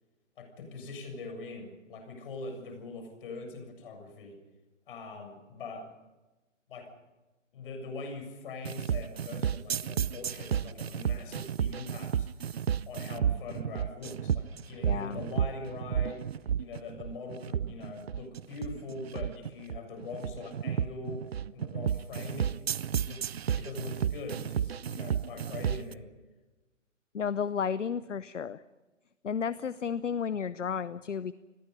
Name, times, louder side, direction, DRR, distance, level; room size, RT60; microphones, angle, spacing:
voice 1, 0.4-4.4 4.9-5.9 6.7-6.9 7.5-12.5 12.9-16.2 16.6-21.2 21.5-22.6 22.9-23.2 23.6-26.1, left 3 dB, 45° left, 5 dB, 7.1 m, -42 dB
sound 1, 8.6-25.9, right 8 dB, 50° right, 0.7 m, -32 dB
voice 2, 14.8-15.2 27.1-28.6 29.2-31.3, left 7 dB, 65° left, 16 dB, 0.9 m, -32 dB
29.0 x 21.0 x 5.4 m, 1.2 s
figure-of-eight pair, 130°, 39 cm